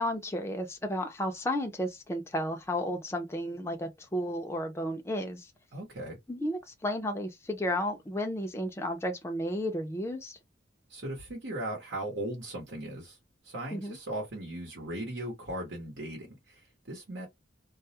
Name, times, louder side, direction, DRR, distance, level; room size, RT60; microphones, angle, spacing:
voice 1, 0.0-5.5 6.3-10.4 13.7-14.0, left 1 dB, 15° left, 0.4 m, -33 dB
voice 2, 5.7-6.2 10.9-13.2 13.4-17.3, right 1 dB, 75° right, 0.9 m, -38 dB
2.3 x 2.0 x 2.7 m
head